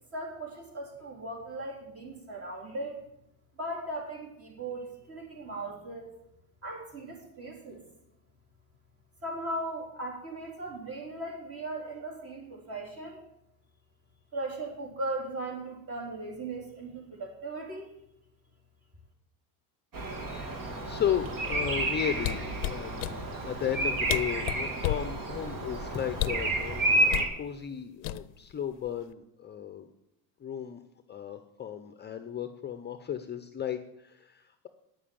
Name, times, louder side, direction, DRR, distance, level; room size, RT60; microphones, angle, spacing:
voice 1, 0.1-3.0 3.6-6.1 6.6-7.8 9.2-13.2 14.3-17.9, right 2 dB, 35° right, 0 dB, 3.8 m, -38 dB
Bird vocalization bird call bird song, 19.9-27.3, right 2 dB, 50° right, 2.8 m, -30 dB
voice 2, 20.9-29.9 30.4-30.8 31.1-34.7, left 9 dB, 25° left, 9 dB, 0.7 m, -35 dB
sound 1, 22.2-23.2 23.8-23.9 24.1-25.1 26.1-26.5 27.1-27.3 28.0-28.5 28.8-29.1, left 15 dB, 85° left, 0.6 m, -32 dB
9.4 x 7.3 x 8.7 m, 0.80 s
supercardioid pair, 120°, 42 cm